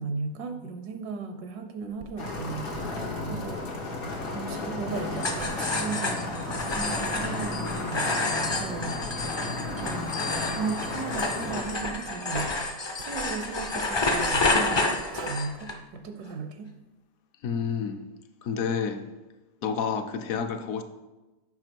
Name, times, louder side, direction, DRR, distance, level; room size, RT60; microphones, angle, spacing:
voice 1, 0.0-2.7 3.3-3.6 4.3-8.2 8.5-9.0 9.8-12.5 13.0-16.7, right 4 dB, 80° right, 7 dB, 1.2 m, -36 dB
Writing, 1.9-7.7 8.2-10.0 10.3-11.1 12.1-12.5 13.0-13.4 14.0-14.6 15.0-15.6, right 5 dB, 55° right, 0.5 m, -44 dB
sound 1, 2.2-11.6, left 2 dB, 85° left, 1.9 m, -34 dB
sound 2, 5.2-15.7, left 2 dB, 40° left, 0.3 m, -29 dB
voice 2, 17.4-18.0 18.4-19.0 19.6-20.8, left 6 dB, 65° left, 8 dB, 1.0 m, -29 dB
7.9 x 5.6 x 4.5 m, 1.1 s
omnidirectional pair, 1.7 m